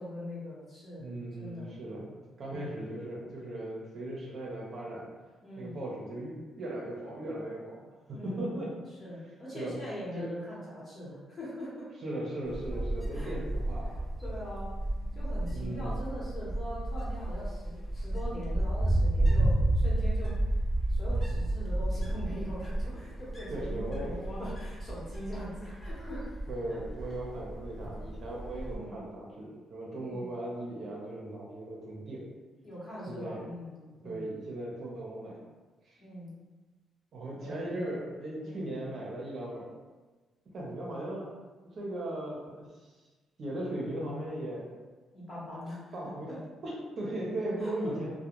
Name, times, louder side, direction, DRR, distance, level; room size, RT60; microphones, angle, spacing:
voice 1, 0.0-1.7 2.5-2.8 5.4-5.8 8.1-8.6 9.0-11.9 13.1-13.3 13.9-14.0 14.2-14.7 15.1-20.3 20.9-26.3 26.7-26.8 28.7-29.0 29.9-30.3 32.6-34.3 36.0-36.3 37.4-37.6 38.4-38.7 45.1-46.4 47.6-48.0, equal, 35° left, -7 dB, 1.1 m, -42 dB
voice 2, 1.0-5.1 5.6-8.8 9.5-9.8 10.1-10.3 12.0-14.0 15.5-15.9 23.5-24.1 26.5-32.3 33.1-33.5 34.0-35.4 35.8-36.0 37.1-39.7 40.5-41.3 41.7-43.0 43.4-44.7 45.9-46.3 46.6-48.1, right 1 dB, 55° right, -3 dB, 0.7 m, -38 dB
Wind, 12.5-28.8, right 1 dB, 15° left, 0.8 m, -31 dB
2.3 x 2.1 x 2.9 m, 1.3 s
cardioid pair, 90°, 0 cm